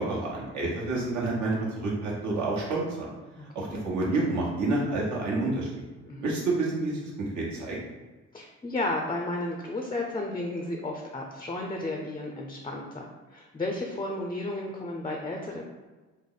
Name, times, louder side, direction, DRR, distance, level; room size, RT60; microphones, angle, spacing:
voice 1, 0.0-3.1 3.5-5.8 6.2-7.0 7.3-7.8, right 2 dB, 70° right, -4 dB, 1.1 m, -28 dB
voice 2, 3.4-3.8 6.0-6.2 8.3-15.6, left 2 dB, 15° left, 1 dB, 0.4 m, -33 dB
3.3 x 2.0 x 3.9 m, 1.2 s
cardioid pair, 90°, 30 cm